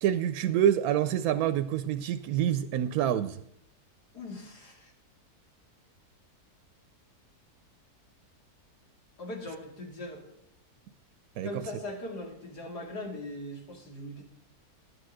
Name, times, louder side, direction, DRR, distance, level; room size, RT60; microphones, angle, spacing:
voice 1, 0.0-3.4 11.4-11.5, right 10 dB, 75° right, 11 dB, 1.0 m, -27 dB
voice 2, 4.1-4.9 9.2-10.4 11.4-14.2, left 1 dB, 85° left, 1 dB, 2.9 m, -40 dB
11.0 x 8.2 x 6.3 m, 0.75 s
omnidirectional pair, 1.7 m